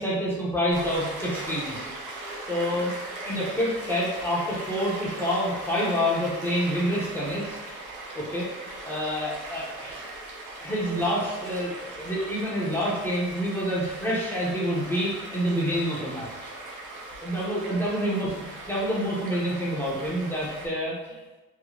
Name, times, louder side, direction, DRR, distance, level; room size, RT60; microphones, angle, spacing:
voice 1, 0.0-1.9 2.5-2.9 3.2-7.6 8.1-8.5 8.8-10.0 10.6-16.3 17.2-18.3 18.7-21.4, equal, 5° left, -6 dB, 1.2 m, -27 dB
Stream, 0.7-20.7, right 2 dB, 85° right, 0.9 m, -39 dB
3.4 x 3.2 x 2.5 m, 1.1 s
cardioid pair, 90°, 30 cm